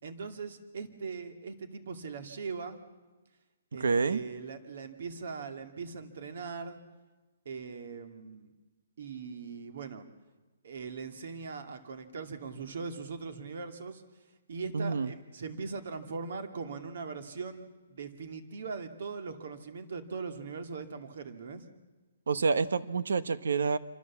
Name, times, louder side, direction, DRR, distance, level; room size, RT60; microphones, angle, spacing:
voice 1, 0.0-2.8 3.7-6.8 7.5-8.5 9.0-10.0 10.6-14.0 14.5-21.6, right 5 dB, 50° right, 7 dB, 2.2 m, -40 dB
voice 2, 3.8-4.2 14.7-15.1 22.3-23.8, right 4 dB, 85° right, 13 dB, 1.2 m, -28 dB
26.5 x 25.0 x 7.3 m, 1.2 s
hypercardioid pair, 175°, 0 cm